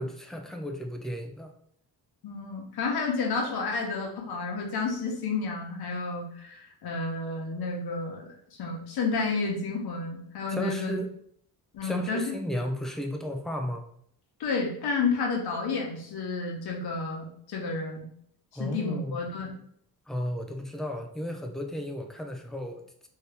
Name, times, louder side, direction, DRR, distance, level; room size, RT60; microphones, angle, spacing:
voice 1, 0.0-1.5 10.5-11.1 11.8-13.8 18.6-19.2 20.1-23.1, equal, ahead, 3 dB, 0.3 m, -34 dB
voice 2, 2.2-11.0 11.7-12.3 14.4-18.1 18.5-19.5, left 4 dB, 70° left, 0 dB, 1.0 m, -31 dB
2.8 x 2.7 x 3.3 m, 0.65 s
cardioid pair, 115°, 39 cm